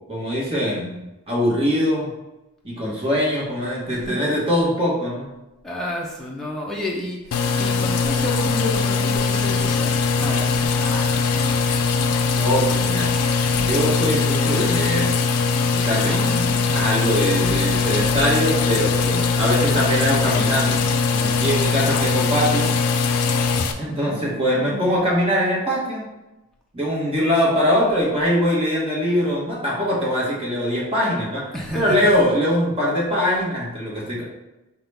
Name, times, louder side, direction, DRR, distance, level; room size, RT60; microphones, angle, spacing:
voice 1, 0.1-1.0 1.3-2.1 2.6-5.3 12.3-13.2 13.5-15.1 15.6-16.5 16.7-20.8 21.1-22.7 23.8-26.1 26.7-31.5 31.7-34.2, equal, 25° right, -5 dB, 1.1 m, -22 dB
voice 2, 3.9-4.2 5.6-11.7 16.0-16.8 21.9-22.1 23.9-24.9 31.5-32.1, left 1 dB, ahead, -4 dB, 0.6 m, -31 dB
sound 1, 7.3-23.7, left 4 dB, 90° left, 0.4 m, -21 dB
5.6 x 2.3 x 3.3 m, 0.99 s
head